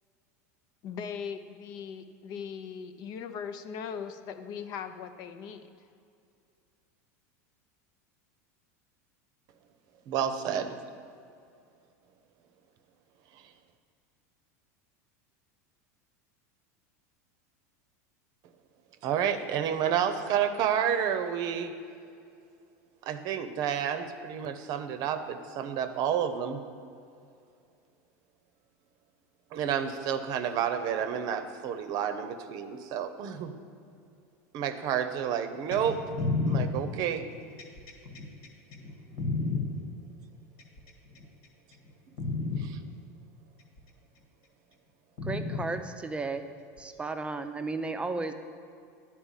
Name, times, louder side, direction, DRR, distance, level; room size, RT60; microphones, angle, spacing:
voice 1, 0.8-5.7, left 7 dB, 50° left, 8 dB, 0.6 m, -39 dB
voice 2, 10.1-10.7 19.0-21.7 23.0-26.6 29.5-33.5 34.5-36.0 36.4-37.2 42.6-42.8, right 8 dB, 50° right, 9 dB, 0.7 m, -30 dB
sound 1, 35.7-39.6 40.6-41.2 41.7-41.9 42.2-42.6 43.8-43.9 45.2-45.6 46.8-46.9, left 3 dB, 70° left, 1.6 m, -31 dB
voice 3, 45.2-46.5 46.8-48.3, right 3 dB, 15° right, 8 dB, 0.6 m, -34 dB
10.0 x 4.5 x 7.3 m, 2.4 s
supercardioid pair, 115°, 9 cm